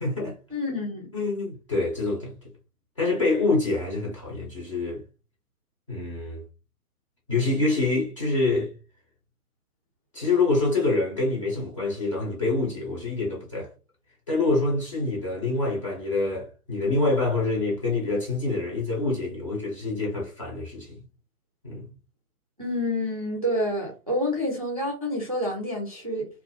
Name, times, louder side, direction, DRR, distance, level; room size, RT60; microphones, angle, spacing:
voice 1, 0.0-0.4 1.1-2.3 3.0-5.0 5.9-6.4 7.3-8.7 10.1-13.7 14.3-21.0 21.6-21.9, left 3 dB, 20° left, 0.6 m, -26 dB
voice 2, 0.5-1.1 22.6-26.3, left 1 dB, 25° right, 0.4 m, -28 dB
2.3 x 2.1 x 2.9 m
figure-of-eight pair, 135°, 45 cm